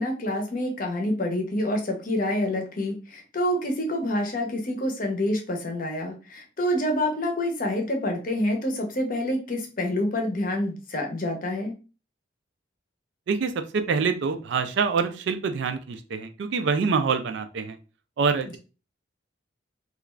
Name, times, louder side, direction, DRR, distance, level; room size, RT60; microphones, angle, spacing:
voice 1, 0.0-11.7, left 1 dB, 45° left, 3 dB, 0.6 m, -27 dB
voice 2, 13.3-17.8 18.2-18.6, right 5 dB, 60° right, 9 dB, 0.3 m, -26 dB
2.4 x 2.3 x 3.0 m, 0.33 s
head